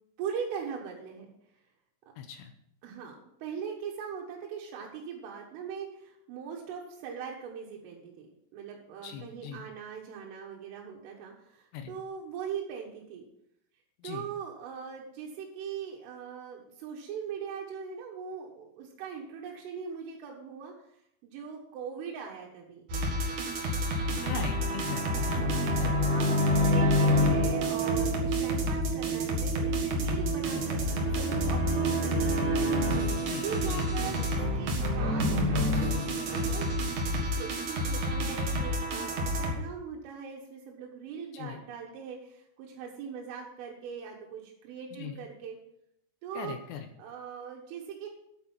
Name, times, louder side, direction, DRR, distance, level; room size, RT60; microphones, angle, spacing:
voice 1, 0.2-1.3 2.8-8.3 8.5-13.3 14.0-20.7 21.2-22.8 25.5-32.6 33.3-45.6 46.2-46.6 47.0-48.1, right 6 dB, 85° right, -1 dB, 4.0 m, -41 dB
voice 2, 2.2-2.5 9.0-9.6 11.7-11.9 14.0-14.3 24.2-25.9 30.5-30.7 33.2-33.9 41.3-41.6 45.0-45.2 46.3-46.9, left 7 dB, 75° left, 7 dB, 2.7 m, -40 dB
sound 1, 22.9-39.5, equal, 55° right, 2.4 m, -28 dB
9.5 x 8.8 x 5.6 m, 0.74 s
omnidirectional pair, 5.6 m